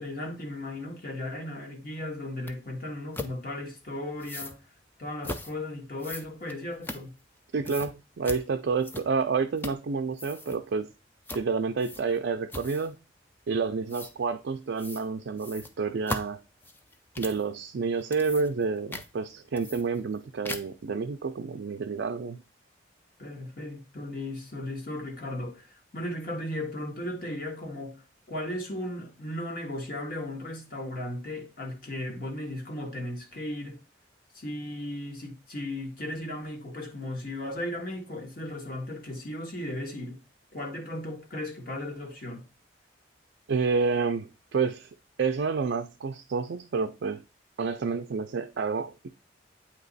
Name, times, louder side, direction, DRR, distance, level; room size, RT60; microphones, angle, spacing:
voice 1, 0.0-4.6 5.0-7.1 23.2-33.8 34.3-40.2 40.5-42.4, left 1 dB, 50° left, 1.4 m, -36 dB
sound 1, 2.5-2.6 3.1-3.3 4.2-4.6 5.2-5.5 6.0-7.4 7.6-7.9 8.2-8.4 8.8-9.2 9.6-9.9 10.1-10.6 11.3-11.5 11.8-12.2 12.5-12.9 13.9-14.1 14.8-15.1 15.4-17.4 17.9-18.6 18.9-19.1 19.6-20.2 20.4-20.8, left 2 dB, 10° left, 0.4 m, -38 dB
voice 2, 7.5-10.9 11.3-13.0 13.5-16.4 17.2-22.4 43.5-44.9 45.2-47.2 47.6-49.1, right 4 dB, 65° right, 0.4 m, -29 dB
8.4 x 3.0 x 4.0 m
head